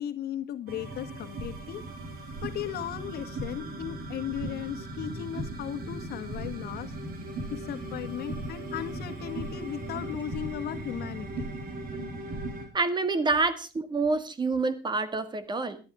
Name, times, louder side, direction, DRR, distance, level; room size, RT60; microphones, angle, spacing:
voice 1, 0.0-1.8 2.4-6.9 7.5-11.5, left 11 dB, 70° left, 9 dB, 1.6 m, -36 dB
sound 1, 0.7-12.7, right 2 dB, 60° right, 4.0 m, -37 dB
voice 2, 12.7-15.8, right 3 dB, 25° right, 12 dB, 1.8 m, -27 dB
12.5 x 12.0 x 4.8 m, 0.34 s
cardioid pair, 110°, 17 cm